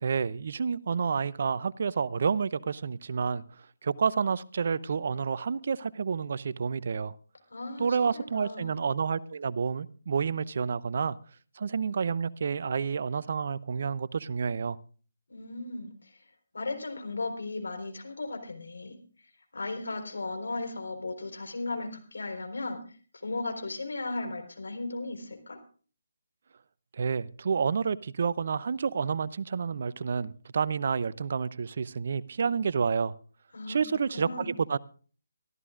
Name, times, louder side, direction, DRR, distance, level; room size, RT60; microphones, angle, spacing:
voice 1, 0.0-3.4 3.8-7.1 7.8-11.2 11.6-14.8 27.0-33.1 33.7-34.8, right 6 dB, 55° right, 0.6 m, -29 dB
voice 2, 7.5-8.8 15.3-16.2 16.5-18.9 19.2-25.6 33.5-33.8 34.1-34.5, left 2 dB, 75° left, 4.2 m, -36 dB
25.0 x 13.5 x 2.5 m
figure-of-eight pair, 150°, 0 cm